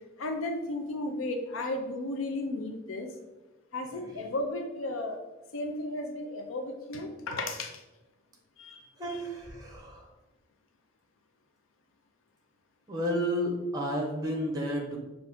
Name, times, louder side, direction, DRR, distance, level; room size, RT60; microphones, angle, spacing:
voice 1, 0.2-3.1 3.7-5.2 5.5-7.8 8.6-8.8, left 2 dB, 90° left, 4 dB, 0.5 m, -34 dB
voice 2, 9.0-10.1 12.9-15.0, equal, 20° right, 0 dB, 0.8 m, -32 dB
5.8 x 2.6 x 3.5 m, 1.1 s
head